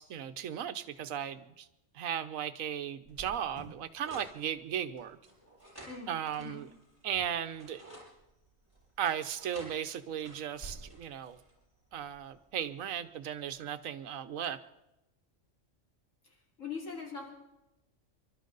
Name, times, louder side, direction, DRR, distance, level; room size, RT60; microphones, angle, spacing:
voice 1, 0.0-1.7 1.9-5.2 6.1-6.7 7.0-7.8 9.0-11.4 11.9-14.6, right 9 dB, 90° right, 12 dB, 1.2 m, -36 dB
Cricket, 3.0-14.5, right 2 dB, 25° left, 4.4 m, -57 dB
sound 1, 4.0-4.3 5.2-7.0 7.4-8.1 9.0-11.5, right 1 dB, 15° right, 5.7 m, -52 dB
voice 2, 16.2-17.3, left 5 dB, 75° left, -1 dB, 3.1 m, -42 dB
27.5 x 12.5 x 3.9 m, 0.92 s
omnidirectional pair, 1.4 m